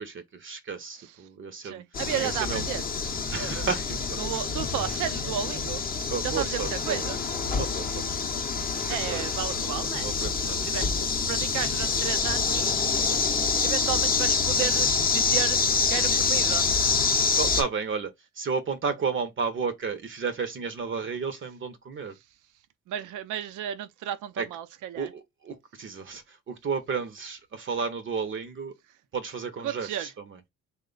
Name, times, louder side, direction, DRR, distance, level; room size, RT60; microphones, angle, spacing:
voice 1, 0.0-1.8 2.2-2.7 3.3-4.4 6.1-8.0 8.9-11.1 12.9-14.0 17.4-22.1 24.4-24.5 24.9-28.7 29.1-30.4, right 5 dB, 40° right, 0.6 m, -33 dB
voice 2, 1.6-2.9 4.2-5.8 6.2-7.2 8.9-10.1 10.4-10.9 11.3-12.7 13.6-15.6 15.9-16.7 22.9-25.1 29.6-30.1, right 11 dB, 85° right, 0.5 m, -33 dB
sound 1, 1.9-17.6, left 5 dB, 30° left, 0.6 m, -26 dB
3.1 x 2.2 x 3.7 m
cardioid pair, 90°, 30 cm